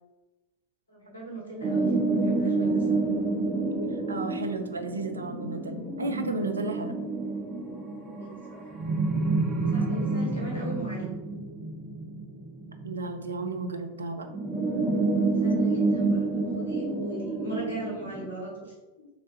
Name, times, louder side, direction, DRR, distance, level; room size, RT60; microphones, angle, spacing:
voice 1, 0.9-1.9 2.2-3.0 8.0-8.6 9.7-11.1 15.2-19.1, right 2 dB, 70° left, -4 dB, 1.3 m, -39 dB
sound 1, 1.6-13.4 14.3-18.3, right 3 dB, 25° right, 0.6 m, -28 dB
voice 2, 4.1-7.0 12.8-14.3, right 3 dB, 75° right, 7 dB, 0.3 m, -33 dB
3.1 x 3.0 x 2.9 m, 1.2 s
figure-of-eight pair, 90°, 0 cm